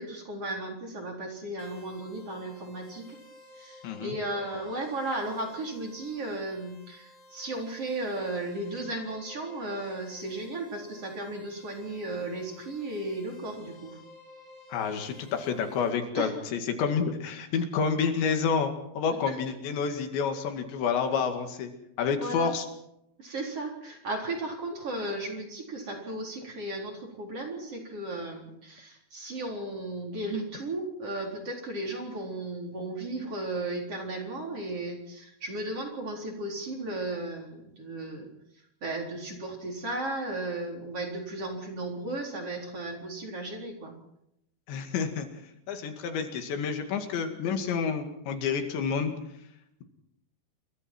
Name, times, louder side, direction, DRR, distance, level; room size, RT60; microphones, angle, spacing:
voice 1, 0.0-3.2 3.6-14.0 16.2-16.3 22.2-22.5 23.2-38.3 38.8-43.9, right 2 dB, 35° right, 1 dB, 4.7 m, -35 dB
sound 1, 1.6-15.9, left 1 dB, 20° left, 6.3 m, -53 dB
voice 2, 3.8-4.2 14.7-21.7 22.0-22.7 44.7-45.4 45.7-49.1, left 6 dB, 80° left, 6 dB, 4.5 m, -29 dB
29.0 x 22.5 x 4.6 m, 0.79 s
omnidirectional pair, 5.1 m